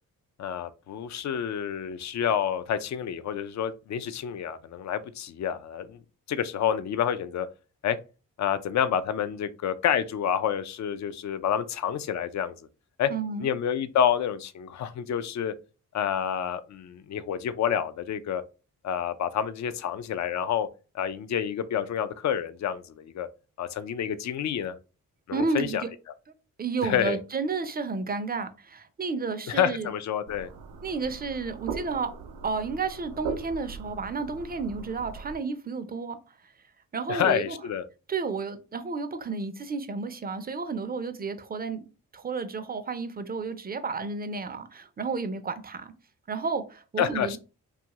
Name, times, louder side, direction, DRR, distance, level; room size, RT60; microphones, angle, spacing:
voice 1, 0.4-6.0 6.3-7.5 7.8-8.0 8.4-12.5 13.0-13.1 13.4-15.5 15.9-18.4 18.8-20.7 20.9-23.3 23.6-24.8 25.3-25.8 26.8-27.2 29.5-30.5 37.1-37.8 47.0-47.4, left 9 dB, 50° left, 0.4 m, -28 dB
voice 2, 13.1-13.5 25.3-25.9 26.6-29.9 30.8-32.1 32.4-36.5 36.9-37.6 38.1-41.8 42.1-45.9 46.3-47.4, right 4 dB, 25° right, 0.5 m, -31 dB
sound 1, 30.3-35.4, right 6 dB, 75° right, 0.5 m, -39 dB
2.6 x 2.4 x 2.9 m
supercardioid pair, 45°, 38 cm